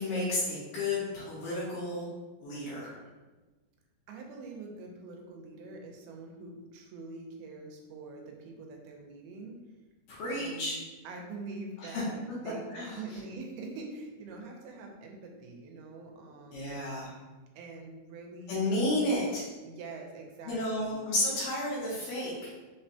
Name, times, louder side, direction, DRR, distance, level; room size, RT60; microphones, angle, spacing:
voice 1, 0.0-2.1 2.4-3.0 10.1-10.8 11.8-12.1 12.7-13.2 16.5-17.1 18.5-19.4 20.5-22.5, left 1 dB, 75° left, -7 dB, 2.2 m, -32 dB
voice 2, 4.1-9.6 10.3-10.8 11.0-16.7 17.5-18.6 19.6-21.1, right 3 dB, 85° right, 1 dB, 2.6 m, -44 dB
5.8 x 2.1 x 2.7 m, 1.2 s
omnidirectional pair, 4.5 m